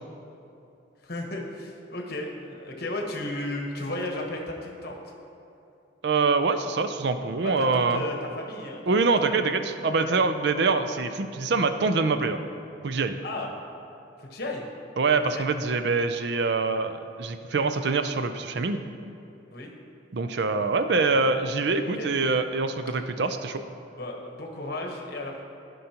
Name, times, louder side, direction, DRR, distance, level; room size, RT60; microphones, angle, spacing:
voice 1, 1.0-5.1 7.4-9.6 10.0-10.2 13.2-13.5 14.2-14.6 15.3-15.4 19.5-19.7 22.0-22.1 23.8-25.4, left 1 dB, 50° left, 1 dB, 1.1 m, -34 dB
voice 2, 6.0-8.0 8.9-12.4 12.8-13.2 15.0-18.8 20.1-23.6, right 4 dB, 55° right, 9 dB, 0.4 m, -25 dB
15.0 x 5.4 x 2.9 m, 2.8 s
head